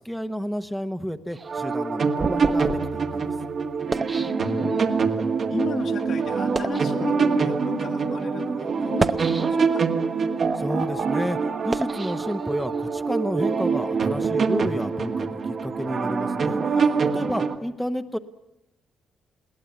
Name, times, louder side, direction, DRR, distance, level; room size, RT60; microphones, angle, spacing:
voice 1, 0.0-3.3 10.5-11.4 11.6-16.8 17.1-18.2, equal, ahead, 7 dB, 1.1 m, -31 dB
sound 1, 1.3-5.0 5.7-5.9 6.4-6.9 7.7-7.9 8.8-9.9 10.4-12.9, right 3 dB, 30° right, 0.8 m, -32 dB
sound 2, 1.4-17.6, right 5 dB, 50° right, 1.9 m, -25 dB
voice 2, 3.9-4.8 5.5-9.9 16.7-17.0, left 6 dB, 65° left, 4 dB, 2.0 m, -35 dB
21.0 x 17.5 x 9.4 m, 0.87 s
cardioid pair, 90°, 0 cm